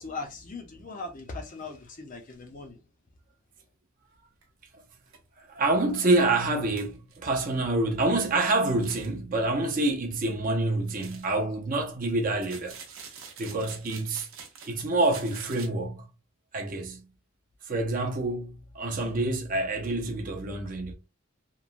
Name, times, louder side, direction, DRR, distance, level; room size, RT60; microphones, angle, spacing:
voice 1, 0.0-2.9, left 3 dB, 35° left, 0.5 m, -39 dB
sound 1, 4.4-4.5 5.1-5.2 5.6-5.7 6.0-6.1 6.8-7.2 8.7-9.1 10.9-11.4 12.4-14.7 15.0-15.7, right 6 dB, 75° right, 0.7 m, -46 dB
voice 2, 5.4-12.8 13.4-14.3 14.7-16.1 16.5-17.1 17.6-20.9, right 2 dB, 40° right, 0.5 m, -27 dB
3.0 x 2.1 x 2.4 m
head